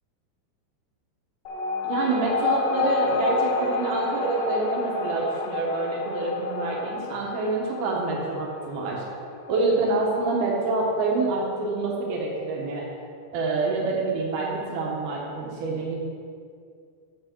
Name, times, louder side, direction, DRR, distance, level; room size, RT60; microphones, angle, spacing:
sound 1, 1.5-12.4, left 4 dB, 90° left, 3.0 m, -30 dB
voice 1, 1.8-9.0 9.5-12.9 13.3-16.0, right 3 dB, 85° right, -2 dB, 1.8 m, -26 dB
9.4 x 7.4 x 4.4 m, 2.3 s
omnidirectional pair, 5.3 m